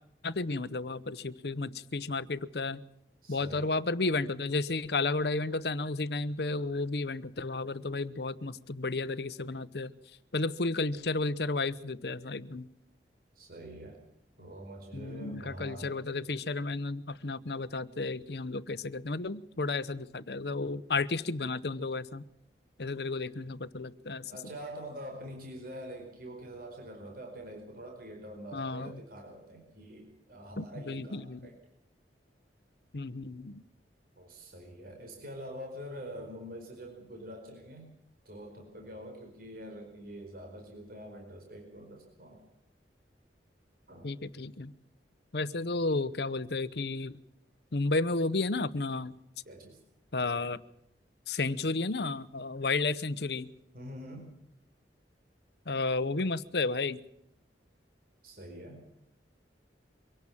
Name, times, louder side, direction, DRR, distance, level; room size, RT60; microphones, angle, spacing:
voice 1, 0.2-2.8 3.3-9.9 10.3-12.7 14.9-22.3 22.8-24.3 28.5-29.0 30.6-31.5 32.9-33.6 44.0-44.7 45.3-47.2 47.7-49.1 50.1-50.6 51.3-53.5 55.7-57.0, left 3 dB, 65° left, 17 dB, 0.9 m, -32 dB
voice 2, 3.2-3.7 13.3-14.0 14.4-15.9 24.3-31.5 34.2-37.9 38.2-42.4 43.9-44.1 45.4-45.5 49.4-49.8 53.7-54.4 58.2-58.8, equal, 55° right, 2 dB, 4.8 m, -45 dB
24.5 x 17.5 x 7.3 m, 0.78 s
head